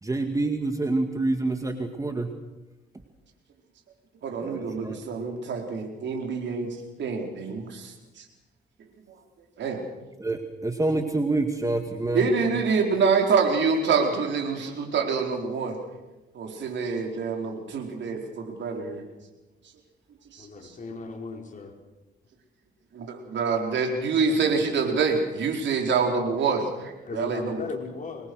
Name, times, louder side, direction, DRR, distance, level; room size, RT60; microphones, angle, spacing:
voice 1, 0.0-2.3 4.4-5.0 10.2-12.3, right 2 dB, 15° right, 6 dB, 2.0 m, -27 dB
voice 2, 4.2-8.2 9.6-9.8 12.1-15.8 16.3-19.0 20.3-20.5 22.9-27.6, right 5 dB, 65° right, 3 dB, 4.6 m, -26 dB
voice 3, 20.4-21.7 27.1-28.3, left 4 dB, 40° left, 2 dB, 4.8 m, -37 dB
26.0 x 21.0 x 6.4 m, 1.1 s
cardioid pair, 90°, 20 cm